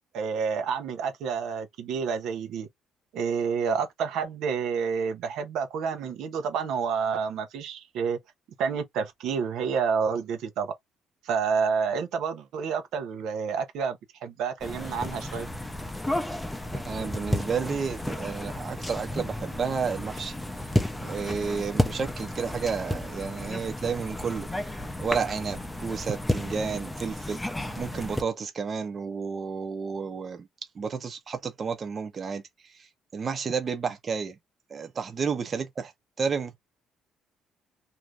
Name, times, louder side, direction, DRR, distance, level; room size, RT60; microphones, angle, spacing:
voice 1, 0.1-2.7 3.1-8.2 8.6-10.7 11.2-15.5, right 6 dB, 75° right, 0.7 m, -29 dB
sound 1, 14.6-28.2, left 1 dB, 5° left, 0.5 m, -32 dB
voice 2, 16.7-20.3 21.0-24.5 25.0-27.4 27.8-30.5 30.7-32.4 33.1-34.4 34.7-35.9 36.2-36.6, right 5 dB, 30° right, 0.7 m, -31 dB
2.6 x 2.4 x 3.2 m
cardioid pair, 145°, 0 cm